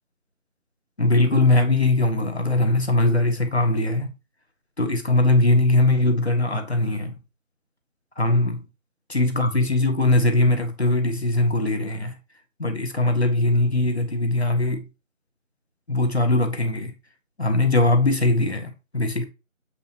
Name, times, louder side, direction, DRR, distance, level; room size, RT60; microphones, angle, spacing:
voice 1, 1.0-4.1 4.8-7.1 8.2-8.6 9.1-12.1 12.6-14.9 15.9-16.9 17.4-19.3, left 2 dB, 50° left, 1.8 m, -21 dB
8.2 x 4.4 x 2.9 m
figure-of-eight pair, 180°, 41 cm